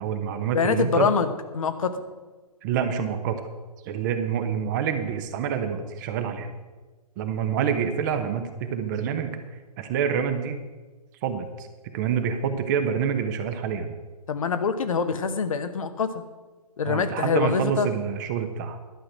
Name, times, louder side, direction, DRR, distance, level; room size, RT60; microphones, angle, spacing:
voice 1, 0.0-1.1 2.6-3.4 3.8-6.6 7.2-9.5 9.8-10.6 11.2-13.9 16.8-18.8, right 7 dB, 30° right, 8 dB, 0.9 m, -27 dB
voice 2, 0.5-2.1 14.3-16.1 16.8-17.9, left 5 dB, 55° left, 10 dB, 1.1 m, -25 dB
11.5 x 6.3 x 7.5 m, 1.3 s
figure-of-eight pair, 125°, 20 cm